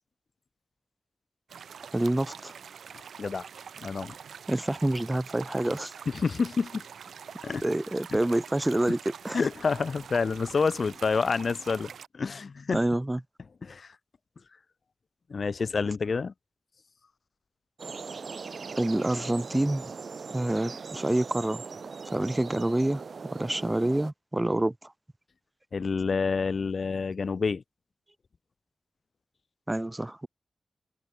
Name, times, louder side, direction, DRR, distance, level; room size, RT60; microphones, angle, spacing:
sound 1, 1.5-12.1, right 7 dB, 85° right, 2.3 m, -45 dB
voice 1, 1.9-2.5 4.5-5.9 7.6-9.4 12.7-13.2 18.8-19.9 20.3-21.6 22.1-23.0 23.3-24.9 29.7-30.3, right 1 dB, 20° right, 1.2 m, -27 dB
voice 2, 3.8-4.1 6.2-6.8 7.4-7.6 9.3-12.8 13.6-13.9 15.3-16.3 25.7-27.6, left 5 dB, 65° left, 0.6 m, -28 dB
sound 2, 17.8-24.1, right 5 dB, 70° right, 2.8 m, -40 dB
cardioid pair, 40°, 0 cm